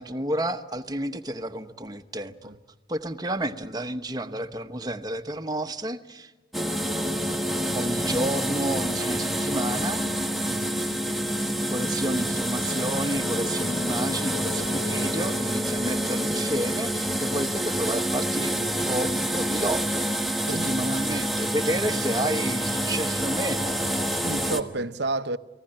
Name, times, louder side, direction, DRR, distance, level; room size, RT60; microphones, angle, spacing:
voice 1, 0.0-2.6 2.9-6.3 7.7-10.0 11.7-20.1 20.5-23.8, right 1 dB, 20° right, 1.0 m, -30 dB
sound 1, 6.5-24.6, equal, ahead, 1.4 m, -27 dB
voice 2, 20.5-20.9 24.2-25.4, right 2 dB, 65° right, 0.8 m, -30 dB
30.0 x 19.5 x 8.9 m
head